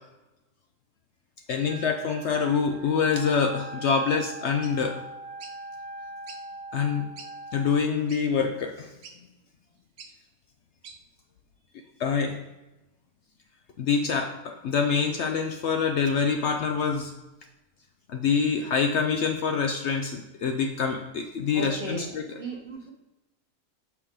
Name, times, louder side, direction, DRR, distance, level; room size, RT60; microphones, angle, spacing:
voice 1, 1.5-5.0 6.7-7.1 7.5-8.9 12.0-12.4 13.8-17.1 18.1-22.2, left 5 dB, 65° left, 4 dB, 0.8 m, -26 dB
Wind instrument woodwind instrument, 1.6-7.8, right 2 dB, 85° right, 1.1 m, -42 dB
sound 1, 4.6-4.8 5.4-5.6 6.3-6.4 6.9-7.0 7.2-7.3 8.1-8.2 9.0-9.2 10.0-10.1 10.8-11.0, right 5 dB, 65° right, 1.0 m, -45 dB
voice 2, 21.5-22.9, right 2 dB, 40° right, -1 dB, 1.1 m, -36 dB
6.7 x 4.8 x 3.6 m, 1.0 s
omnidirectional pair, 1.5 m